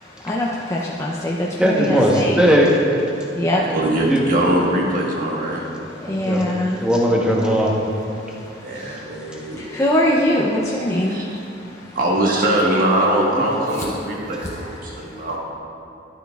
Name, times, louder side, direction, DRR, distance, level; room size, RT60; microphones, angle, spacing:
voice 1, 0.2-1.4 1.6-2.4 3.4-3.6 6.0-6.8 9.7-11.2, left 1 dB, 15° left, -4 dB, 0.5 m, -21 dB
voice 2, 1.6-2.8 4.1-4.2 6.2-6.4 6.8-7.8 9.3-9.4 13.3-13.4, equal, 5° right, -2 dB, 1.0 m, -17 dB
voice 3, 3.7-5.6 8.6-9.6 11.1-11.4 11.9-15.4, right 1 dB, 50° right, -2 dB, 1.4 m, -21 dB
12.0 x 9.1 x 2.4 m, 2.6 s
head